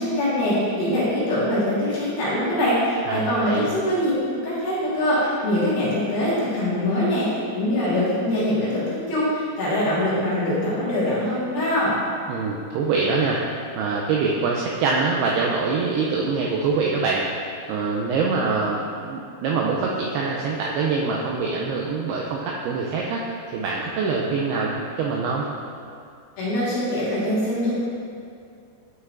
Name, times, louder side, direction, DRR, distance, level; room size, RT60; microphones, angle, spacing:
voice 1, 0.0-11.9 26.4-27.9, left 1 dB, 65° left, -9 dB, 2.9 m, -23 dB
voice 2, 3.1-3.7 12.3-13.4 13.8-17.2 17.7-23.2 23.5-25.5, right 4 dB, 85° right, -2 dB, 2.3 m, -24 dB
9.3 x 5.6 x 2.5 m, 2.4 s
omnidirectional pair, 5.1 m